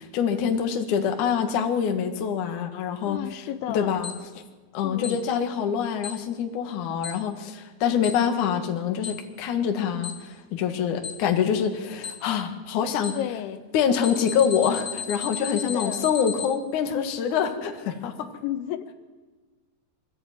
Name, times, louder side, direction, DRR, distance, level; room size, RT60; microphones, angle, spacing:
voice 1, 0.0-3.4 3.7-4.1 4.7-13.2 13.7-18.3, left 7 dB, 55° left, 5 dB, 2.5 m, -25 dB
voice 2, 3.1-3.9 4.8-5.2 13.1-13.6 15.5-16.1 18.4-18.9, left 11 dB, 85° left, 10 dB, 3.3 m, -32 dB
Alarm, 4.0-4.1 5.0-5.1 6.0-6.1 7.0-7.1 8.0-8.1 9.0-9.1 10.0-10.1 11.0-11.1 12.0-12.1 13.0-13.1 14.0-16.5, left 8 dB, 25° left, 1.0 m, -33 dB
23.0 x 14.0 x 9.0 m, 1.3 s
omnidirectional pair, 5.2 m